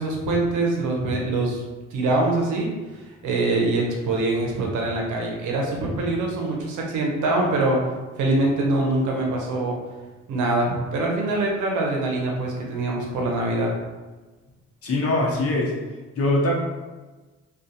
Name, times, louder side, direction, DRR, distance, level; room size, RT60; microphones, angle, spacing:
voice 1, 0.0-1.6 1.9-7.8 8.2-9.8 10.3-13.7, right 2 dB, 80° right, 0 dB, 0.7 m, -24 dB
voice 2, 14.8-15.7 16.2-16.5, left 2 dB, 50° left, -3 dB, 0.8 m, -22 dB
2.4 x 2.3 x 2.7 m, 1.2 s
cardioid pair, 90°, 30 cm